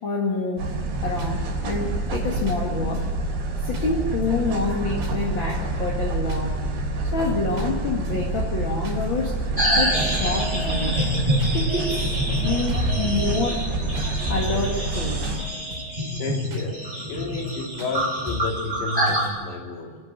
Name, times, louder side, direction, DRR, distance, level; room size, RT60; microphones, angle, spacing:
voice 1, 0.0-0.8 1.0-3.1 3.6-6.6 7.1-12.2 12.4-13.7 14.3-15.5, left 3 dB, 35° left, -2 dB, 2.1 m, -27 dB
sound 1, 0.6-0.7 1.2-1.3 1.7-2.2 2.5-2.6 2.9-3.3 3.7-3.9 4.2-4.8 5.0-5.2 5.5-5.8 6.3-6.4 6.8-7.3 7.6-7.7 8.1-8.4 8.8-9.1 9.3-9.9 10.1-10.3 10.6-10.9 11.4-11.6 11.9-12.4 12.7-12.8 13.2-13.5 14.0-14.1 14.4-15.0 15.2-15.4 15.7-16.0 16.5-16.7 17.0-17.5 17.8-17.9 18.3-18.6 19.1-19.3, right 1 dB, 55° right, 4.2 m, -40 dB
sound 2, 0.6-15.4, right 2 dB, 80° right, 5.7 m, -27 dB
sound 3, 9.6-19.3, equal, 10° right, 3.1 m, -26 dB
voice 2, 16.2-20.0, left 3 dB, 85° left, 1 dB, 5.1 m, -31 dB
25.0 x 12.0 x 9.0 m, 1.5 s
omnidirectional pair, 5.0 m